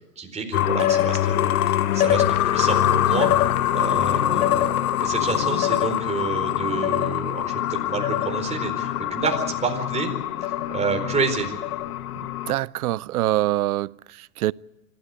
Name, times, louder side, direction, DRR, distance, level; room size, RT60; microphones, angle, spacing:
voice 1, 0.2-3.3 3.7-4.7 5.0-10.1 10.7-11.5, right 4 dB, 15° right, 4.4 m, -29 dB
sound 1, 0.5-12.5, left 12 dB, 65° left, 1.2 m, -23 dB
voice 2, 12.5-14.5, right 15 dB, 70° right, 0.7 m, -24 dB
26.0 x 13.5 x 9.4 m
hypercardioid pair, 120°, 47 cm